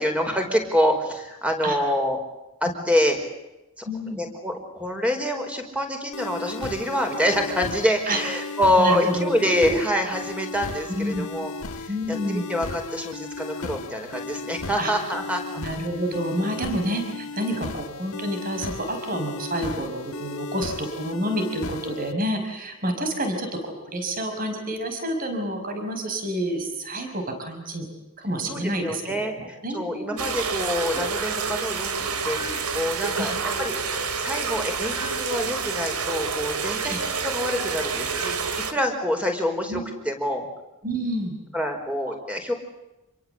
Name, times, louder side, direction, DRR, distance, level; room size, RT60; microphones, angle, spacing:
voice 1, 0.0-2.2 2.6-3.2 3.8-11.5 11.8-15.6 28.5-29.3 29.7-33.3 33.6-33.7 34.2-38.3 38.7-40.5 41.5-42.5, equal, 5° right, 4 dB, 5.0 m, -26 dB
voice 2, 3.8-4.2 8.1-8.2 8.8-9.3 9.5-9.8 10.9-11.3 11.9-12.5 14.8-14.9 15.6-27.9 28.2-30.2 30.9-31.0 32.4-32.6 33.2-33.4 36.8-37.0 39.7-39.8 40.8-41.4, right 1 dB, 40° right, 5 dB, 5.4 m, -29 dB
sound 1, 6.1-22.1, left 3 dB, 75° left, 1.5 m, -35 dB
sound 2, 30.2-38.7, right 5 dB, 90° right, 3.0 m, -28 dB
28.0 x 23.0 x 8.1 m, 0.97 s
head